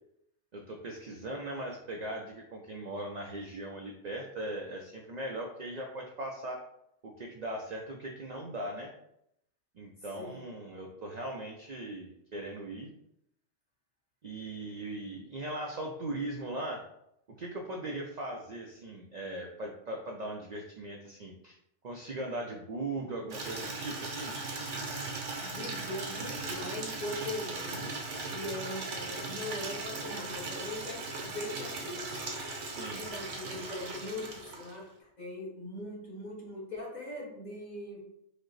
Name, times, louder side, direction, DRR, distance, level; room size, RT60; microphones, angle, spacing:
voice 1, 0.5-6.6 7.0-8.9 9.7-12.9 14.2-16.8 17.3-21.5 21.8-24.3 32.6-33.0, right 1 dB, 55° right, 0 dB, 0.5 m, -39 dB
Water tap faucet / Liquid, 23.3-34.9, right 3 dB, 75° right, 1.2 m, -38 dB
voice 2, 25.4-27.9 28.2-32.1 33.0-38.0, left 1 dB, 40° left, -3 dB, 1.2 m, -41 dB
5.1 x 2.0 x 3.9 m, 0.78 s
omnidirectional pair, 1.2 m